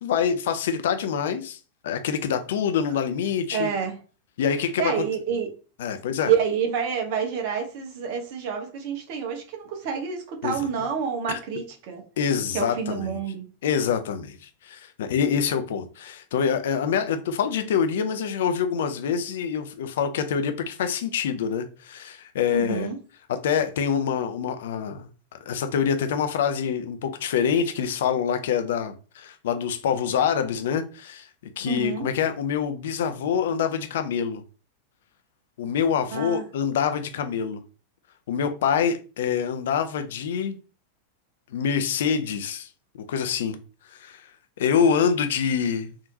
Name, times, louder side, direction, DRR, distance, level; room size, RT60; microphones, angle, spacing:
voice 1, 0.0-1.6 1.8-3.7 4.4-5.0 5.8-6.3 10.4-10.7 11.3-11.4 12.2-13.1 13.6-22.9 23.3-25.1 25.5-31.3 31.6-34.4 35.6-37.6 38.3-40.6 41.5-42.7 43.1-43.6 43.9-44.3 44.6-45.9, left 7 dB, 60° left, 0.5 m, -25 dB
voice 2, 3.5-4.0 4.6-5.5 6.2-12.0 12.5-13.4 22.5-23.0 31.6-32.1 36.1-36.5, right 7 dB, 45° right, 0.9 m, -28 dB
3.5 x 2.7 x 2.7 m
figure-of-eight pair, 90°, 0 cm